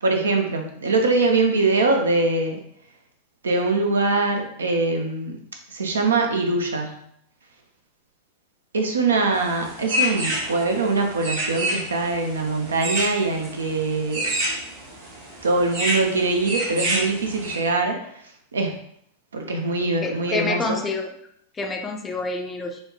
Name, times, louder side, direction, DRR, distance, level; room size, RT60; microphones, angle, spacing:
voice 1, 0.0-2.6 3.4-5.4 5.7-7.0 8.7-14.4 15.4-18.0 18.5-18.8 19.3-20.8, right 3 dB, 70° right, 3 dB, 0.4 m, -23 dB
sound 1, 9.3-17.6, equal, 50° right, 0.9 m, -29 dB
voice 2, 20.0-21.1 21.5-22.8, left 3 dB, 15° left, 3 dB, 0.4 m, -27 dB
4.1 x 2.0 x 2.2 m, 0.70 s
figure-of-eight pair, 90°, 0 cm